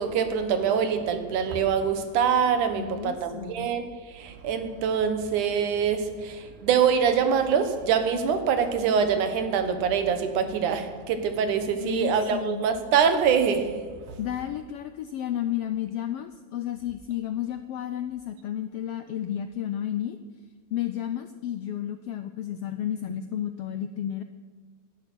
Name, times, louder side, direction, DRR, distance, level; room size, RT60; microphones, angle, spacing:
voice 1, 0.0-3.9 4.1-13.9, right 7 dB, 90° right, 2.8 m, -24 dB
voice 2, 2.8-3.7 11.8-12.6 14.2-20.2 20.7-24.2, left 11 dB, 85° left, 1.3 m, -32 dB
17.5 x 11.5 x 6.2 m
omnidirectional pair, 3.4 m